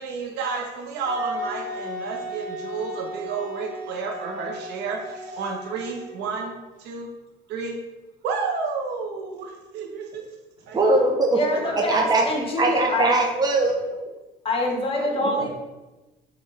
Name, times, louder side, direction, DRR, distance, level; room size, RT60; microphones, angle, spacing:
voice 1, 0.0-6.5 6.8-7.1 7.5-7.8 8.2-10.3 10.7-10.8 11.5-11.8 13.8-13.9 15.1-15.5, right 5 dB, 85° right, 1 dB, 0.9 m, -31 dB
Wind instrument woodwind instrument, 1.0-6.6, equal, 50° right, 1.0 m, -35 dB
voice 2, 10.7-11.4 11.9-12.2 12.6-13.8, right 2 dB, 25° right, 0 dB, 0.7 m, -20 dB
voice 3, 11.3-13.1 14.4-15.5, left 1 dB, 35° left, 0 dB, 1.2 m, -25 dB
5.8 x 2.6 x 3.2 m, 1.1 s
cardioid pair, 110°, 17 cm